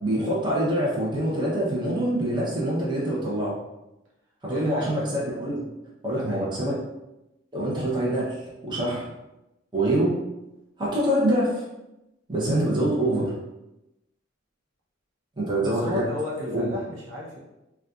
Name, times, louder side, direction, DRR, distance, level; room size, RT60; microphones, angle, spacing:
voice 1, 0.0-3.6 4.4-5.6 6.0-6.8 7.5-9.0 9.7-10.1 10.8-11.6 12.3-13.3 15.4-16.0 16.4-16.6, right 1 dB, 25° right, -6 dB, 0.8 m, -25 dB
voice 2, 4.5-4.9 5.6-5.7 6.1-6.5 15.6-17.4, left 1 dB, 70° right, -4 dB, 0.8 m, -33 dB
4.1 x 2.3 x 2.4 m, 0.95 s
head